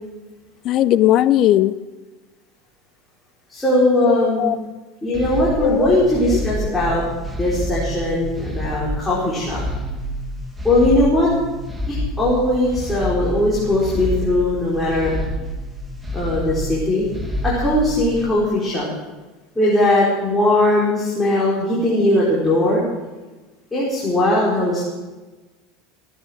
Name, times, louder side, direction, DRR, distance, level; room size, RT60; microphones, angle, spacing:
voice 1, 0.6-1.8 4.1-4.6 5.6-5.9 11.3-11.4, left 13 dB, 45° left, 17 dB, 0.6 m, -17 dB
voice 2, 3.5-4.5 5.0-7.0 7.4-9.6 10.6-11.3 11.9-15.1 16.1-17.0 17.4-18.8 19.5-22.8 23.7-24.8, left 1 dB, 10° left, -8 dB, 4.8 m, -19 dB
sound 1, 5.1-18.3, equal, 10° right, 1.8 m, -28 dB
17.0 x 10.5 x 6.3 m, 1.2 s
supercardioid pair, 125°, 0 cm